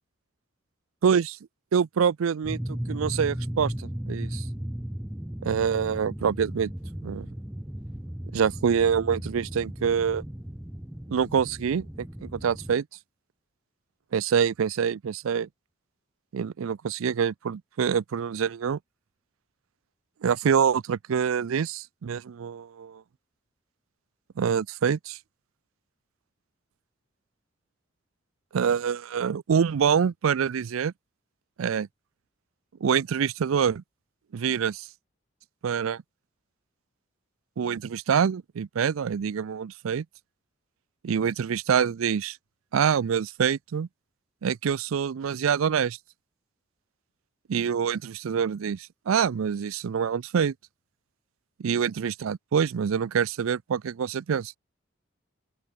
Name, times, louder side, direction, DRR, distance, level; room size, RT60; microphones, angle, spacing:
voice 1, 1.0-1.4 1.7-4.4 5.4-6.7 7.0-7.3 8.3-10.2 11.1-11.9 12.2-12.9 14.1-15.5 16.3-18.8 20.2-23.0 24.4-25.2 28.5-30.9 31.6-31.9 32.8-33.8 34.3-34.9 35.6-36.0 37.6-40.0 41.0-42.4 42.7-43.9 44.4-46.0 47.5-50.5 51.6-54.5, right 7 dB, 85° right, 0.4 m, -26 dB
sound 1, 2.4-12.7, equal, 5° right, 0.4 m, -36 dB
open air
head